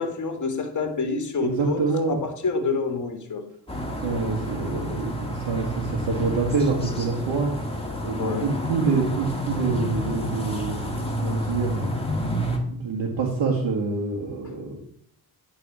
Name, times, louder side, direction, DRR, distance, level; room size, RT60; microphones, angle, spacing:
voice 1, 0.0-1.8 2.1-3.4 8.2-8.5, left 4 dB, 40° left, 6 dB, 1.8 m, -27 dB
voice 2, 1.4-2.2 3.9-7.5 8.0-11.9 12.6-14.8, right 4 dB, 80° right, -1 dB, 1.7 m, -26 dB
sound 1, 3.7-12.6, equal, 10° left, 2.1 m, -29 dB
9.8 x 4.1 x 6.1 m, 0.66 s
cardioid pair, 60°, 45 cm